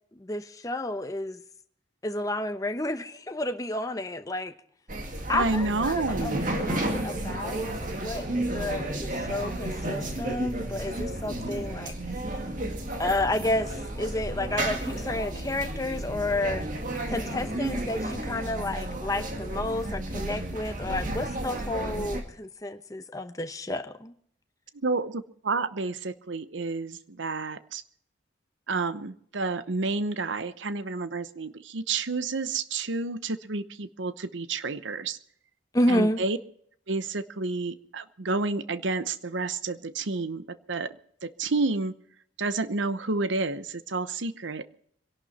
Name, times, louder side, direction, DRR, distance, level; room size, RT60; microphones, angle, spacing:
voice 1, 0.2-1.4 2.0-4.5 5.3-7.6 7.9-11.9 13.0-16.7 17.1-24.1 35.7-36.2, left 1 dB, 20° left, 8 dB, 0.8 m, -31 dB
sound 1, 4.9-22.2, right 1 dB, 45° right, 2.2 m, -32 dB
voice 2, 5.3-6.5 24.7-27.8 28.7-35.2 35.9-36.4 36.9-41.0 41.2-41.9 42.4-44.7, right 3 dB, 85° right, 14 dB, 0.9 m, -30 dB
25.5 x 11.5 x 4.3 m, 0.63 s
head